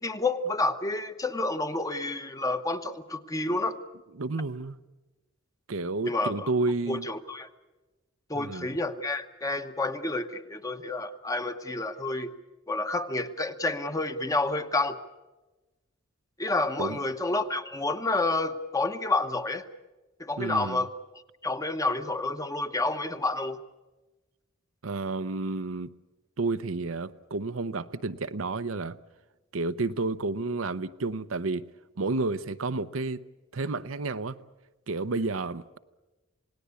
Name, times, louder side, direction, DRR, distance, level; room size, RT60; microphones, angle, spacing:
voice 1, 0.0-3.8 6.0-6.5 6.9-7.5 8.3-12.3 12.7-15.0 16.4-19.7 20.2-20.9 21.4-23.6, left 2 dB, 15° left, 1.0 m, -29 dB
voice 2, 4.1-4.8 5.7-7.1 8.3-8.7 16.8-17.0 20.4-20.9 24.8-25.9 26.4-29.0 29.5-31.7 32.0-33.2 33.5-34.4 34.9-35.8, right 3 dB, 80° right, 0.8 m, -31 dB
28.0 x 18.5 x 8.3 m
head